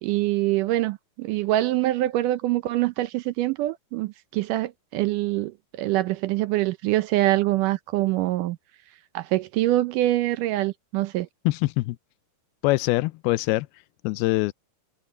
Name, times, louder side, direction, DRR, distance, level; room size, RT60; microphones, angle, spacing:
voice 1, 0.0-8.6 9.1-11.3, right 16 dB, 80° right, 1.9 m, -24 dB
voice 2, 11.5-12.0 12.6-13.7 14.0-14.5, left 21 dB, 90° left, 2.5 m, -23 dB
omnidirectional pair, 4.4 m